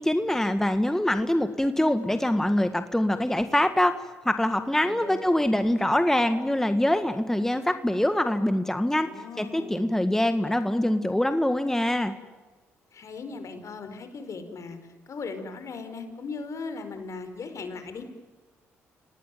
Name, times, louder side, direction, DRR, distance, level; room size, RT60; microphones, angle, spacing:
voice 1, 0.0-3.9 4.3-9.1 9.4-12.1, left 1 dB, 5° left, 9 dB, 1.8 m, -24 dB
voice 2, 4.8-5.2 9.0-9.9 12.9-14.8 15.1-18.0, left 4 dB, 55° left, 9 dB, 5.0 m, -38 dB
28.0 x 19.0 x 9.3 m, 1.3 s
hypercardioid pair, 50°, 6 cm